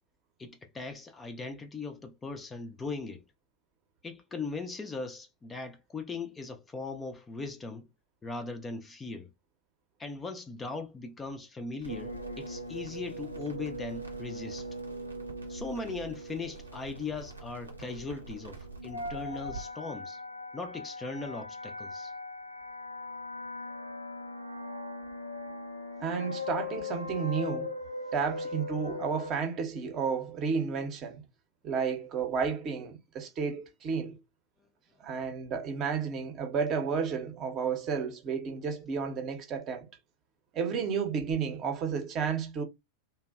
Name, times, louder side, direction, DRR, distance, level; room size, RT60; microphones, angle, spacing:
voice 1, 0.4-3.2 4.0-7.9 8.2-9.3 10.0-14.7 15.5-20.2 20.5-22.1, left 3 dB, 15° left, 0.4 m, -39 dB
Crackle, 11.8-19.6, right 5 dB, 80° right, 0.7 m, -48 dB
sound 1, 11.9-29.3, left 2 dB, 90° left, 0.4 m, -40 dB
voice 2, 26.0-27.8 28.1-31.2 31.6-34.2 35.0-39.9 40.5-42.6, right 6 dB, 35° right, 0.6 m, -32 dB
2.5 x 2.1 x 2.3 m
figure-of-eight pair, 90°, 0 cm